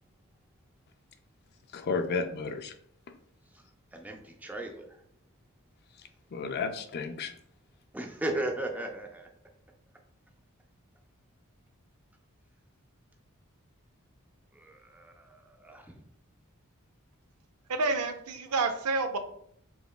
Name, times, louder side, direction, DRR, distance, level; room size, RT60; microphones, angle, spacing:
voice 1, 1.7-2.7 6.0-7.3, left 4 dB, 45° left, 8 dB, 0.4 m, -33 dB
voice 2, 3.4-5.0 7.9-9.3 14.5-16.1, right 1 dB, 5° right, 3 dB, 0.5 m, -37 dB
voice 3, 17.7-19.2, right 3 dB, 85° right, 7 dB, 0.5 m, -29 dB
4.9 x 3.3 x 2.3 m, 0.67 s
head